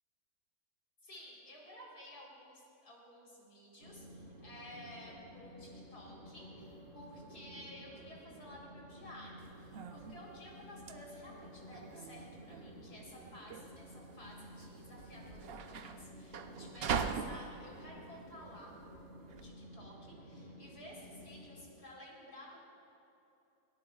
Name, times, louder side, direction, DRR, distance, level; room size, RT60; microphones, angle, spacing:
voice 1, 1.0-18.8 19.1-22.6, equal, 70° left, -3 dB, 4.3 m, -54 dB
Train, 3.8-21.7, equal, 80° right, 2.8 m, -53 dB
sound 1, 9.4-19.4, right 6 dB, 60° right, 0.6 m, -42 dB
22.5 x 18.5 x 2.3 m, 2.9 s
omnidirectional pair, 1.7 m